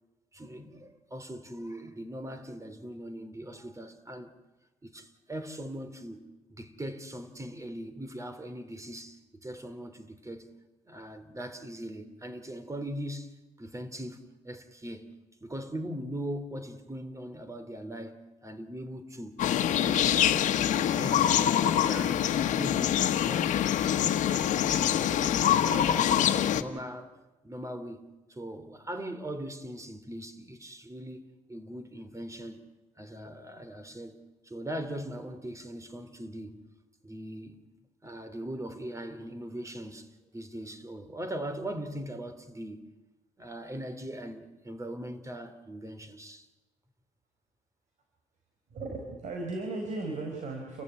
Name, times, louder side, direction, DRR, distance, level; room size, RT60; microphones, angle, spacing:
voice 1, 0.3-4.3 4.8-6.2 6.5-10.5 10.9-13.3 13.6-15.1 15.4-22.3 22.6-23.5 23.8-24.2 24.5-27.1 27.4-28.0 28.3-31.2 31.5-32.6 33.0-34.2 34.4-36.7 37.0-37.6 38.0-42.9 43.4-46.5, right 1 dB, 25° right, 3.0 m, -40 dB
sound 1, 19.4-26.6, left 10 dB, 75° left, 1.3 m, -25 dB
voice 2, 48.7-50.8, right 2 dB, 70° right, 4.8 m, -36 dB
29.5 x 15.0 x 9.9 m
supercardioid pair, 60°, 13 cm